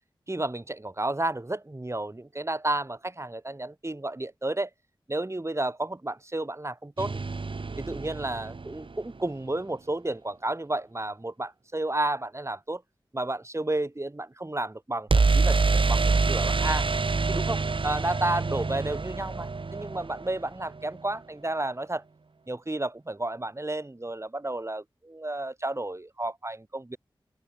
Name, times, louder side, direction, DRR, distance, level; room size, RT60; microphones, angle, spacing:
voice 1, 0.3-4.7 5.1-7.2 7.8-12.8 13.1-16.9 17.3-22.0 22.5-27.0, right 2 dB, 30° right, 5.6 m, -32 dB
sound 1, 7.0-9.0 15.1-20.9, right 4 dB, 70° right, 3.3 m, -26 dB
open air
wide cardioid pair, 50°, 9 cm